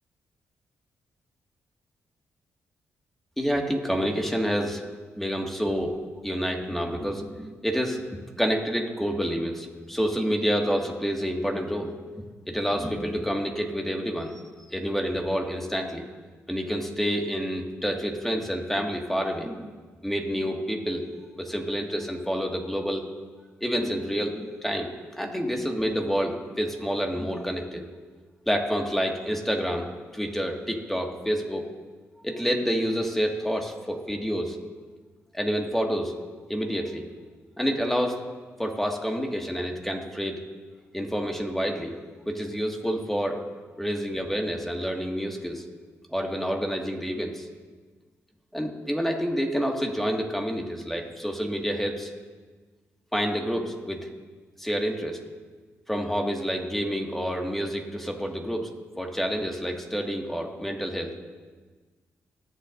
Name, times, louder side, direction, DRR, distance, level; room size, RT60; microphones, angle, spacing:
voice 1, 3.4-4.8 5.2-5.9 6.2-8.0 8.4-11.9 12.5-14.3 14.7-16.0 16.5-19.7 20.0-21.0 21.4-23.1 23.6-27.8 28.5-29.9 30.1-31.7 32.2-34.6 35.3-36.1 36.5-37.1 37.6-38.2 38.6-40.4 40.9-41.9 42.3-43.4 43.8-45.6 46.1-47.5 48.5-52.1 53.1-54.1 54.6-55.2 55.9-61.1, equal, 5° left, 1 dB, 1.9 m, -28 dB
19.5 x 7.6 x 2.6 m, 1.4 s
supercardioid pair, 55°, 6 cm